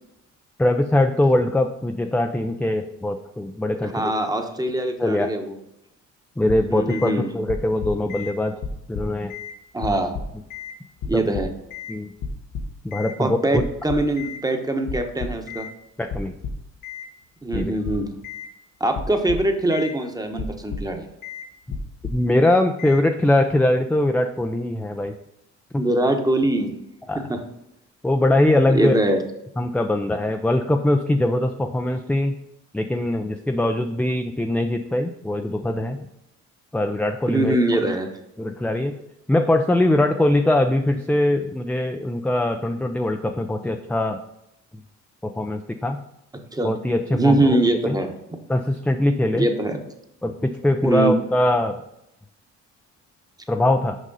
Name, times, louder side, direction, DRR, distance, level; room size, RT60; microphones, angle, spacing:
voice 1, 0.6-4.1 5.0-5.3 6.4-8.6 8.9-9.3 11.1-11.3 11.9-12.1 12.8-13.6 16.0-16.3 17.5-17.7 22.1-25.1 25.7-25.8 27.1-27.2 28.0-29.0 29.6-32.3 32.7-36.0 36.7-37.6 38.4-38.9 39.3-44.2 45.2-46.0 46.6-47.6 47.8-48.0 48.5-49.5 50.2-51.8 53.5-54.0, left 1 dB, 5° left, 5 dB, 0.4 m, -22 dB
voice 2, 3.8-5.5 6.7-7.3 9.7-10.1 11.0-11.5 13.2-15.7 17.4-18.1 18.8-21.1 25.8-26.7 27.1-27.4 28.7-29.2 37.3-38.1 46.5-46.7 47.1-48.1 49.3-49.8 50.8-51.1, right 1 dB, 10° right, 5 dB, 1.0 m, -22 dB
sound 1, 6.5-7.1 7.5-8.3 8.6-9.5 9.8-10.7 11.0-11.9 12.2-13.1 13.6-14.4 14.9-15.7 16.1-17.1 17.5-18.5 18.9-19.9 20.3-21.0 21.2-21.5 21.7-22.3 22.8-23.0, left 5 dB, 85° left, 1.1 m, -32 dB
6.3 x 5.3 x 4.0 m, 0.82 s
cardioid pair, 90°, 30 cm